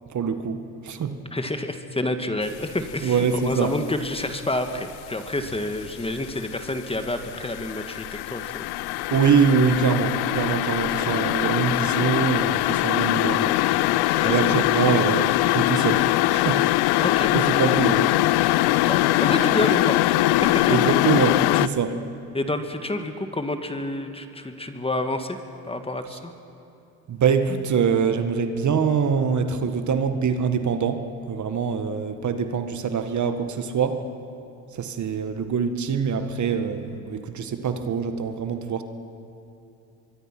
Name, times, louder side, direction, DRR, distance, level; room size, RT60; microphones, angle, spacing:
voice 1, 0.1-1.2 3.0-3.7 9.1-13.5 14.3-16.7 17.3-18.1 20.7-22.0 27.1-34.0 34.7-38.8, right 6 dB, 45° right, 8 dB, 1.8 m, -24 dB
voice 2, 1.3-9.0 14.2-14.3 17.0-17.4 18.8-20.2 20.5-20.8 21.5-21.7 22.3-25.4 25.6-26.3, left 1 dB, 15° left, 7 dB, 1.8 m, -29 dB
sound 1, 2.6-3.0 3.4-4.9 5.3-21.7, left 17 dB, 65° left, 0.7 m, -22 dB
24.0 x 23.0 x 6.1 m, 2.7 s
supercardioid pair, 75°, 41 cm